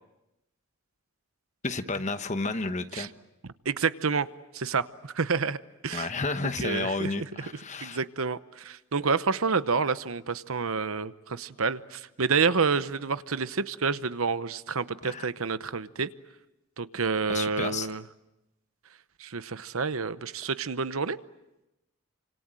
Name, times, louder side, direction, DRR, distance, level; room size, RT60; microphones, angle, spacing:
voice 1, 1.6-3.1 5.9-8.0 15.0-15.3 17.3-17.9, left 3 dB, 35° left, 1.1 m, -31 dB
voice 2, 3.6-4.3 4.5-5.6 5.8-6.1 6.4-7.5 7.8-16.1 16.8-18.0 19.2-21.2, right 5 dB, 70° right, 0.9 m, -29 dB
29.5 x 26.0 x 7.6 m
head